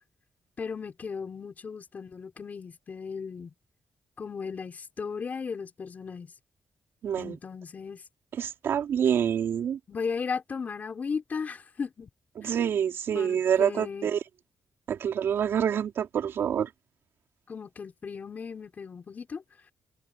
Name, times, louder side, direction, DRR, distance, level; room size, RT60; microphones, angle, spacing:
voice 1, 0.6-3.5 4.2-6.3 7.2-8.0 9.9-12.1 12.4-12.5 13.1-14.1 17.5-19.4, left 5 dB, 40° left, 5.6 m, -36 dB
voice 2, 7.0-7.4 8.3-9.8 12.4-14.2 14.9-16.7, right 8 dB, 70° right, 3.0 m, -27 dB
wide cardioid pair, 135°, 4 cm